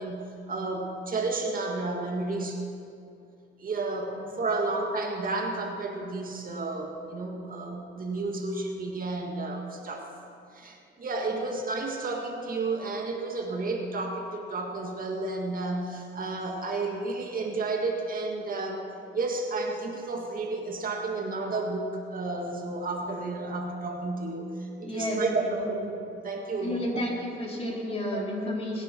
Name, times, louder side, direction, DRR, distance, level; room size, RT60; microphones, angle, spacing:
voice 1, 0.0-2.6 3.6-10.1 10.5-18.9 19.1-27.0 28.1-28.2, right 3 dB, 45° right, 2 dB, 1.8 m, -32 dB
voice 2, 24.8-25.7 26.6-28.8, left 1 dB, 30° left, -3 dB, 4.0 m, -32 dB
23.0 x 10.0 x 4.5 m, 2.5 s
cardioid pair, 90°, 20 cm